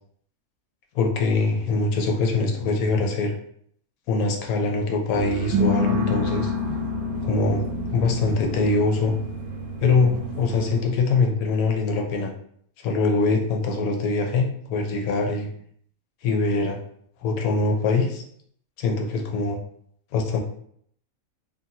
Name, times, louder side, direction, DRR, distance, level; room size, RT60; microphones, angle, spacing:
voice 1, 0.9-3.3 4.1-6.5 7.2-7.6 7.9-9.2 9.8-12.3 12.8-15.5 16.2-16.8 17.2-18.2 18.8-19.6 20.1-20.4, left 3 dB, 85° left, 2 dB, 1.0 m, -23 dB
sound 1, 5.1-10.8, left 1 dB, 80° right, 1.1 m, -27 dB
2.6 x 2.4 x 2.7 m, 0.65 s
omnidirectional pair, 1.5 m